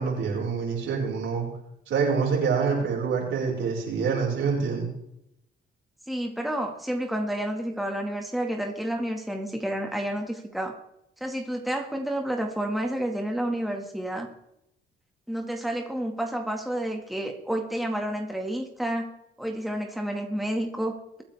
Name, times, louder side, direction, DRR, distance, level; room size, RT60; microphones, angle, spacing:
voice 1, 0.0-1.5 1.9-4.9, right 5 dB, 75° right, -1 dB, 5.4 m, -26 dB
voice 2, 6.1-10.7 11.2-14.3 15.3-19.1 19.4-21.2, right 1 dB, ahead, 2 dB, 2.0 m, -30 dB
23.5 x 9.0 x 3.6 m, 0.80 s
cardioid pair, 90°, 20 cm